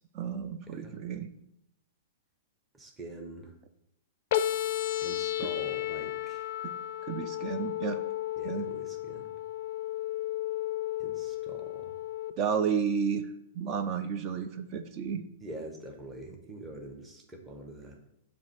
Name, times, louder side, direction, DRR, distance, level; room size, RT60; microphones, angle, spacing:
voice 1, 0.1-1.3 7.1-8.0 8.4-8.6 12.4-13.3 13.5-15.2, right 6 dB, 30° right, 9 dB, 0.4 m, -31 dB
voice 2, 0.7-1.0 2.7-3.5 5.0-6.5 8.4-9.3 11.0-11.9 15.4-18.0, right 1 dB, 10° right, 2 dB, 0.9 m, -44 dB
sound 1, 4.3-12.3, left 13 dB, 50° left, 0.4 m, -33 dB
7.3 x 2.6 x 5.6 m, 0.79 s
hypercardioid pair, 155°, 0 cm